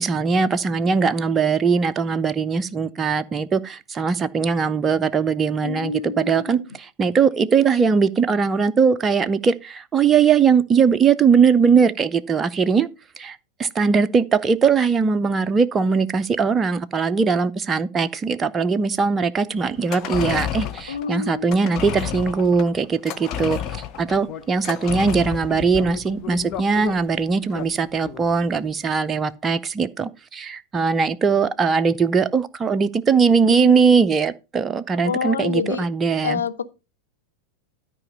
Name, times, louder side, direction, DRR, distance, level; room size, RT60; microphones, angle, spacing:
voice 1, 0.0-12.9 13.2-36.4, right 5 dB, 20° right, 0.6 m, -20 dB
voice 2, 5.6-6.7 20.9-21.6 33.5-33.9 35.0-35.8 36.2-36.6, left 6 dB, 70° left, 0.9 m, -28 dB
sound 1, 19.7-28.4 28.7-28.8, left 10 dB, 35° left, 1.0 m, -31 dB
13.0 x 4.9 x 5.3 m
figure-of-eight pair, 90°, 0 cm